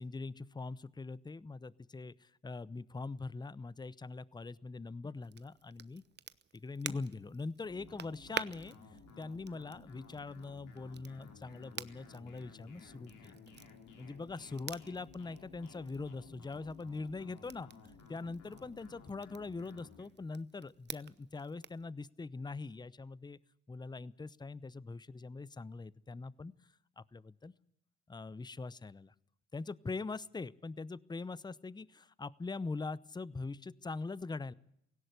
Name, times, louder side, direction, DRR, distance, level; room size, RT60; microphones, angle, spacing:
voice 1, 0.0-6.0 6.5-13.4 14.0-17.7 18.1-23.4 23.7-26.5 27.0-27.5 28.1-29.1 29.5-34.5, left 3 dB, 10° left, 22 dB, 0.7 m, -42 dB
Crackle, 5.2-21.9, right 7 dB, 30° right, 0.9 m, -50 dB
sound 1, 7.6-20.0, left 4 dB, 60° left, 4.3 m, -56 dB
17.5 x 16.5 x 9.5 m, 0.74 s
hypercardioid pair, 60°, 34 cm